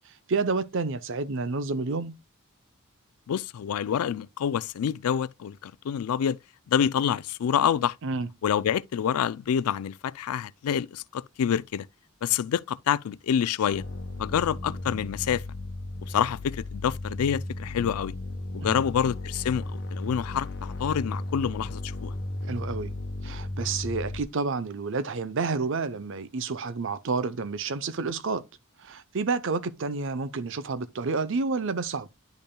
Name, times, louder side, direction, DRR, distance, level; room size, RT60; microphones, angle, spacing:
voice 1, 0.3-2.2 8.0-8.3 18.6-18.8 22.5-22.9 23.2-28.4 28.8-32.1, right 4 dB, 60° right, 0.6 m, -29 dB
voice 2, 3.3-6.4 6.7-8.0 8.4-11.9 12.2-13.8 14.2-15.4 16.1-18.1 18.5-22.1, left 8 dB, 85° left, 0.3 m, -27 dB
sound 1, 13.7-24.2, left 2 dB, 50° left, 0.9 m, -35 dB
10.5 x 5.4 x 2.2 m
head